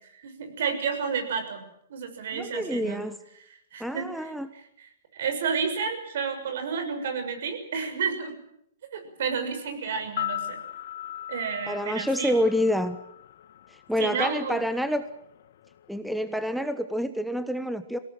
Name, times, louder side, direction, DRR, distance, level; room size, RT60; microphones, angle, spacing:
voice 1, 0.1-1.6 1.9-3.0 3.7-4.3 4.8-8.3 8.9-10.6 11.3-12.3 14.0-14.6, right 6 dB, 65° right, 6 dB, 6.5 m, -31 dB
voice 2, 2.3-3.2 3.8-4.5 11.7-13.0 13.7-15.0 15.9-18.0, equal, ahead, 10 dB, 1.2 m, -27 dB
sound 1, 10.0-14.2 14.4-14.6, left 12 dB, 60° left, 1.3 m, -37 dB
22.5 x 18.0 x 9.1 m, 0.78 s
hypercardioid pair, 125°, 0 cm